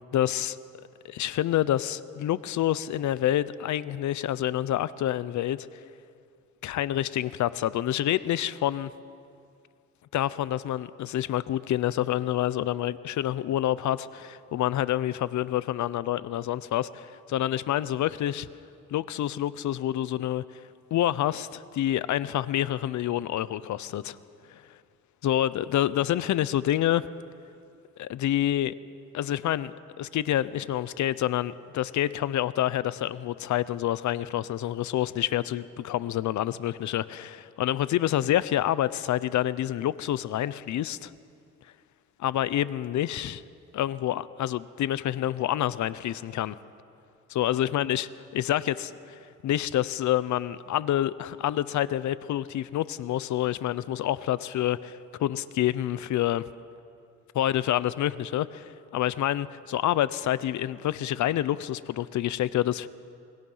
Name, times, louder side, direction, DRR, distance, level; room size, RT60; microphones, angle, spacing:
voice 1, 0.1-0.6 1.0-5.7 6.6-8.9 10.1-18.5 18.9-20.4 20.9-24.2 24.5-24.6 25.2-27.0 28.0-28.7 29.1-41.1 42.2-43.4 43.7-46.6 47.3-48.1 48.3-56.5 57.3-62.9, left 12 dB, 70° left, 17 dB, 0.8 m, -27 dB
28.5 x 21.5 x 5.7 m, 2.4 s
cardioid pair, 90°, 30 cm